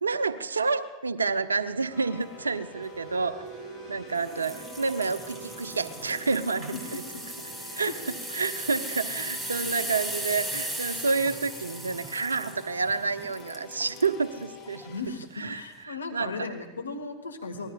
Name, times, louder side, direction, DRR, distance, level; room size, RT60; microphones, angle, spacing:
voice 1, 0.0-3.4 3.9-7.0 7.8-14.9 15.4-16.5, right 4 dB, 85° right, 13 dB, 0.7 m, -29 dB
sound 1, 1.5-14.0, right 5 dB, 40° right, 5.7 m, -49 dB
sound 2, 1.9-15.0, left 7 dB, 45° left, 4.6 m, -48 dB
sound 3, 4.2-14.1 14.7-14.9 15.4-15.5, right 1 dB, 10° right, 2.4 m, -37 dB
voice 2, 14.8-17.7, left 3 dB, 85° left, 6 dB, 1.6 m, -36 dB
24.5 x 19.0 x 2.4 m, 1.2 s
figure-of-eight pair, 90°, 0 cm